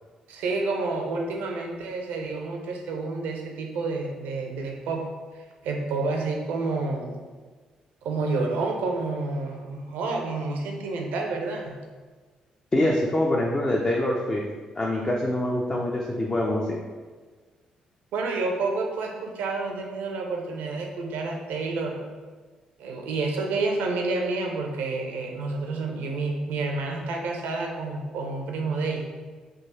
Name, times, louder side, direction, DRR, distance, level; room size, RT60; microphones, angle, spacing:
voice 1, 0.3-5.1 5.3-7.2 8.0-11.8 18.1-22.1 22.8-29.0, right 3 dB, 70° right, 1 dB, 0.6 m, -29 dB
voice 2, 12.7-14.4 14.7-16.7, left 1 dB, 30° left, -1 dB, 0.6 m, -24 dB
3.7 x 2.6 x 4.1 m, 1.4 s
hypercardioid pair, 45°, 3 cm